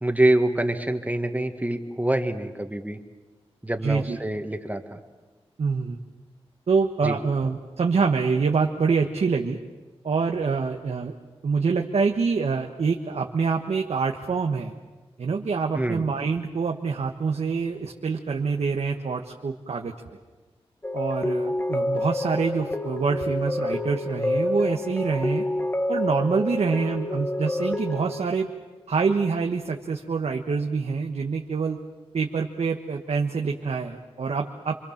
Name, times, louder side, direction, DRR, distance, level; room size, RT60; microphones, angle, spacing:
voice 1, 0.0-3.0 3.6-5.0 7.0-7.2 15.7-16.0, right 1 dB, 15° right, 6 dB, 1.6 m, -25 dB
voice 2, 3.8-4.2 5.6-6.0 6.7-9.6 10.0-11.1 11.4-14.7 15.2-19.9 20.9-25.4 25.9-28.5 28.9-31.8 32.1-34.7, right 5 dB, 80° right, 3 dB, 1.3 m, -26 dB
sound 1, 20.8-28.2, left 1 dB, 20° left, 1.2 m, -28 dB
28.0 x 24.5 x 7.3 m, 1.3 s
wide cardioid pair, 85°, 11 cm